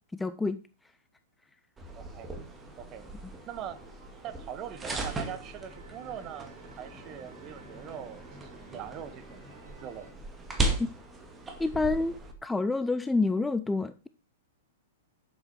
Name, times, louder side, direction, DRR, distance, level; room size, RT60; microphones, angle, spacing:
voice 1, 0.1-0.6 11.6-12.1 12.4-14.1, left 3 dB, 5° left, 12 dB, 0.5 m, -28 dB
sound 1, 1.8-12.3, right 2 dB, 15° right, 2.1 m, -37 dB
voice 2, 1.9-2.3 2.8-3.1 3.5-3.8 4.2-9.4 9.8-10.1, right 10 dB, 30° right, 11 dB, 1.4 m, -42 dB
sound 2, 2.6-10.1, right 1 dB, 65° right, 5.0 m, -56 dB
10.5 x 7.8 x 4.5 m, 0.32 s
figure-of-eight pair, 105°, 0 cm